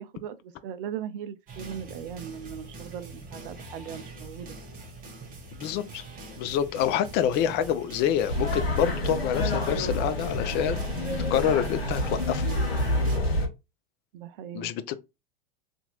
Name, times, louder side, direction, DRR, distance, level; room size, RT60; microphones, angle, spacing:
voice 1, 0.0-4.6 6.9-7.0 10.9-11.3 14.1-14.7, right 9 dB, 60° right, 0.4 m, -39 dB
sound 1, 1.5-13.2, right 2 dB, 30° right, 1.0 m, -43 dB
voice 2, 5.6-6.0 6.4-10.9 11.3-12.5 14.5-15.0, left 9 dB, 35° left, 0.4 m, -27 dB
sound 2, 8.3-13.5, left 1 dB, 90° left, 0.9 m, -28 dB
2.8 x 2.5 x 2.8 m
hypercardioid pair, 100°, 30 cm